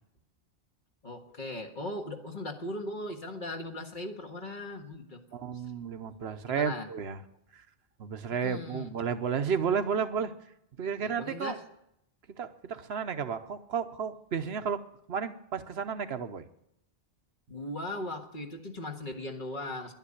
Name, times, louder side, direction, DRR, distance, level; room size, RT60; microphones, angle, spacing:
voice 1, 1.0-5.2 6.5-6.9 8.3-8.9 11.0-11.6 17.5-19.9, left 1 dB, 50° left, 2 dB, 1.8 m, -38 dB
voice 2, 5.3-7.2 7.5-7.6 8.0-10.3 10.8-11.5 12.4-14.8 15.1-16.5, right 6 dB, 90° right, 10 dB, 1.1 m, -32 dB
11.0 x 9.4 x 9.9 m, 0.79 s
omnidirectional pair, 1.0 m